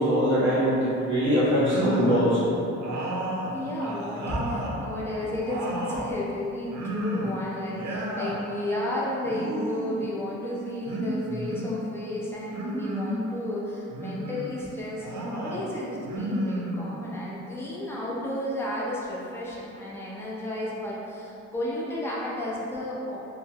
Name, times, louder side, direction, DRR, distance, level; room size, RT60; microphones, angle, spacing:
voice 1, 0.0-2.5, equal, 40° right, -9 dB, 0.8 m, -22 dB
sound 1, 1.5-2.3 2.8-4.8 5.2-6.1 6.7-7.4 7.7-8.4 9.2-10.0 10.9-11.8 12.5-13.2 13.9-14.5 15.0-15.6 16.0-17.1, right 1 dB, 70° right, 0.5 m, -32 dB
voice 2, 3.5-23.2, left 1 dB, 10° left, -7 dB, 0.6 m, -32 dB
3.3 x 2.0 x 2.8 m, 2.8 s
cardioid pair, 90°, 30 cm